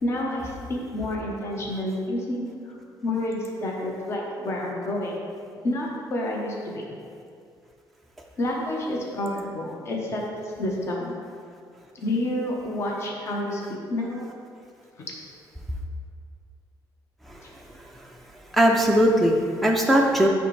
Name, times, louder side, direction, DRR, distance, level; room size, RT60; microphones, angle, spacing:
voice 1, 0.0-2.8 3.0-5.2 5.6-6.8 8.4-11.2 11.9-14.3 15.0-15.1, left 1 dB, 35° left, -2 dB, 0.8 m, -29 dB
voice 2, 18.5-20.3, equal, ahead, -1 dB, 0.4 m, -19 dB
9.0 x 3.5 x 3.2 m, 2.3 s
cardioid pair, 155°, 8 cm